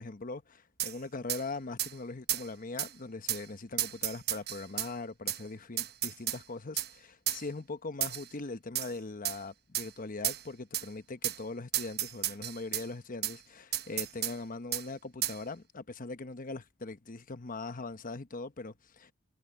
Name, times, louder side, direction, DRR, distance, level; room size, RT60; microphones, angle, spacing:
voice 1, 0.0-19.1, left 3 dB, 40° left, 1.0 m, -41 dB
sound 1, 0.8-0.9 1.3-1.4 1.8-1.9 2.3-2.5 2.8-2.9 3.3-3.4 3.8-4.9 5.3-5.4 5.8-6.4 6.8-6.9 7.3-7.4 8.0-8.3 8.8-8.9 9.3-9.4 9.7-9.9 10.2-10.4 10.7-10.9 11.2-11.4 11.7-12.9 13.2-13.4 13.7-14.4 14.7-14.9 15.2-15.4, right 13 dB, 50° right, 0.9 m, -32 dB
head